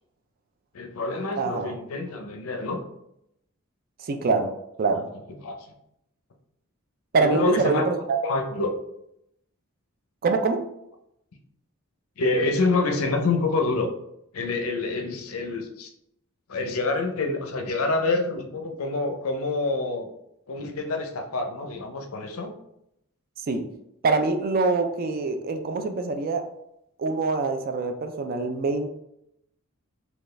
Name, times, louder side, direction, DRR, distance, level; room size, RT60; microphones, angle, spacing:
voice 1, 0.7-2.8 4.9-5.0 5.4-5.6 7.2-7.9 8.2-8.7 12.2-13.9 14.3-15.9 16.5-20.1 20.5-22.5, left 3 dB, 70° left, 5 dB, 0.6 m, -27 dB
voice 2, 1.4-1.8 4.0-4.5 4.8-5.1 7.1-8.2 10.2-10.6 23.5-23.6 24.0-26.4 27.0-28.9, right 3 dB, 45° right, 6 dB, 0.4 m, -24 dB
4.2 x 2.3 x 3.2 m, 0.80 s
head